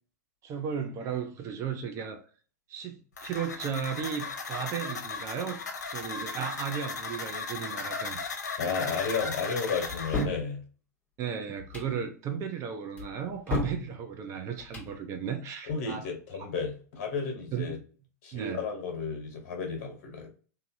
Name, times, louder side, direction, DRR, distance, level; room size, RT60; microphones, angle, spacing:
voice 1, 0.4-2.2 2.7-8.2 11.2-16.1 17.5-17.8 18.3-18.6, right 7 dB, 35° right, 0.6 m, -35 dB
sound 1, 3.2-10.2, left 4 dB, 80° left, 0.7 m, -36 dB
voice 2, 8.6-10.6 15.7-17.8 18.2-20.3, left 5 dB, 50° left, 1.3 m, -33 dB
sound 2, 9.9-10.4 11.6-11.9 13.0-13.8 14.6-14.9, left 1 dB, 15° left, 1.3 m, -32 dB
3.2 x 2.5 x 2.6 m
hypercardioid pair, 105°, 9 cm